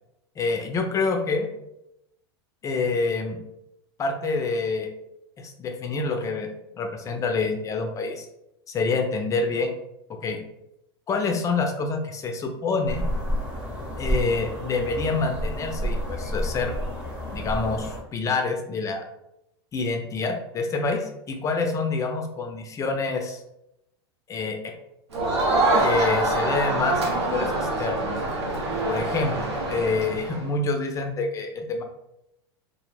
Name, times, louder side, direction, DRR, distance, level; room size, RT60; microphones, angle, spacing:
voice 1, 0.4-1.5 2.6-3.4 4.0-4.9 5.4-6.5 6.8-8.3 8.7-9.7 10.2-10.4 11.1-13.0 14.0-16.7 17.3-19.0 19.7-23.4 24.3-24.7 25.8-28.1 28.8-31.8, left 3 dB, 25° left, 4 dB, 0.4 m, -27 dB
sound 1, 12.9-18.0, equal, 10° right, 0.7 m, -30 dB
Crowd, 25.1-30.4, right 2 dB, 90° right, 0.7 m, -25 dB
2.1 x 2.0 x 3.1 m, 0.84 s
hypercardioid pair, 100°, 14 cm